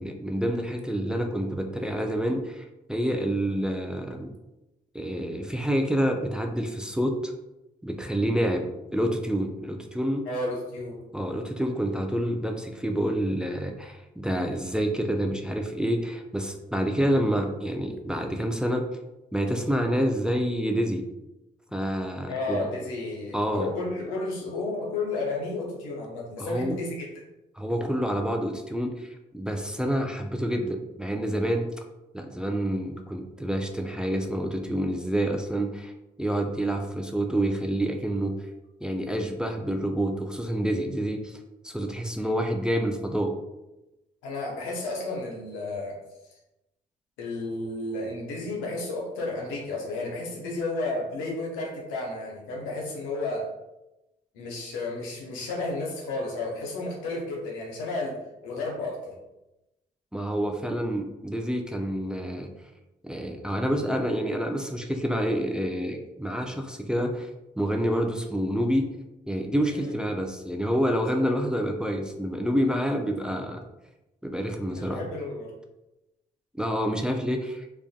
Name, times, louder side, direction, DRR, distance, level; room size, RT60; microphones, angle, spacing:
voice 1, 0.0-4.3 4.9-7.3 7.8-10.2 11.1-18.8 19.3-21.0 21.7-22.6 23.3-23.7 26.4-26.8 27.6-29.1 29.3-31.7 32.1-35.9 36.2-38.4 38.8-41.4 41.6-43.3 60.1-62.5 63.0-67.3 67.6-68.9 69.3-73.6 74.2-75.0 76.6-77.7, equal, 5° right, 4 dB, 0.3 m, -28 dB
voice 2, 10.3-11.0 22.3-27.1 44.2-46.0 47.2-53.5 54.3-59.2 69.7-69.9 74.8-75.5, left 2 dB, 90° left, -1 dB, 0.6 m, -32 dB
2.5 x 2.2 x 2.3 m, 0.95 s
hypercardioid pair, 45°, 20 cm